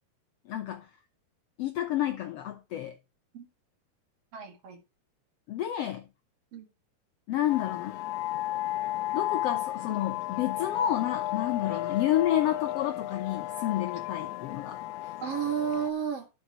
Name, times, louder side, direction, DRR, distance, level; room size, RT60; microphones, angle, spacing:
voice 1, 0.5-0.9 1.6-3.0 5.5-6.0 7.3-8.0 9.1-15.1, left 12 dB, 90° left, 1.3 m, -30 dB
voice 2, 4.3-4.8 6.5-6.7 11.6-11.8 15.2-16.3, right 8 dB, 50° right, 2.5 m, -32 dB
sound 1, 7.5-15.9, left 15 dB, 75° left, 1.9 m, -33 dB
11.5 x 5.0 x 4.8 m
omnidirectional pair, 3.9 m